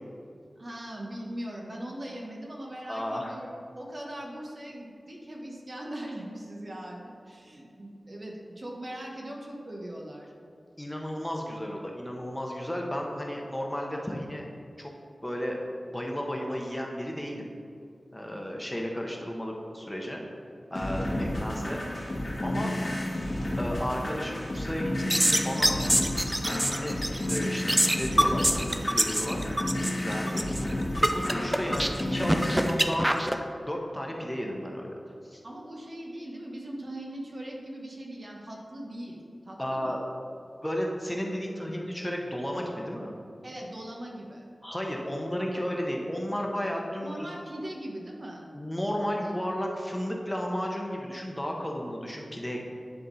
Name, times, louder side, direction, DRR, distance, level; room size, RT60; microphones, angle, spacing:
voice 1, 0.6-3.5 3.7-10.3 21.1-21.3 29.3-29.5 35.4-39.2 39.4-40.0 43.4-44.4 47.0-48.5, right 1 dB, 50° right, -1 dB, 1.3 m, -40 dB
voice 2, 2.9-3.4 10.8-14.5 14.8-14.9 15.2-17.5 18.1-20.2 20.7-21.8 22.4-22.7 23.6-26.1 26.4-27.0 27.3-29.4 30.0-30.5 31.0-34.9 35.3-35.4 39.6-40.0 40.6-43.1 44.6-47.3 48.5-52.7, equal, 15° left, 0 dB, 1.1 m, -33 dB
sound 1, 20.7-32.7, left 1 dB, 55° left, 1.6 m, -31 dB
sound 2, 25.0-33.3, right 1 dB, 15° right, 0.5 m, -25 dB
10.5 x 3.7 x 4.1 m, 2.4 s
cardioid pair, 40°, 0 cm